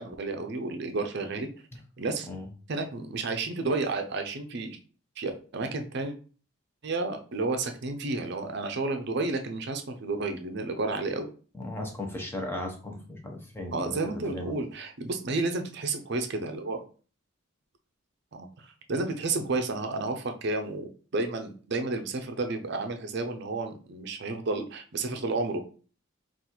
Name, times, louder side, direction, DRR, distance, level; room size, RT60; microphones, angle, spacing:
voice 1, 0.0-1.5 2.0-2.3 2.7-4.8 5.2-6.1 6.8-11.3 13.7-16.8 18.3-25.6, right 3 dB, 50° right, 6 dB, 0.5 m, -31 dB
voice 2, 11.5-14.0 14.2-14.5, left 1 dB, 10° left, 1 dB, 0.6 m, -36 dB
3.9 x 2.4 x 4.3 m, 0.39 s
head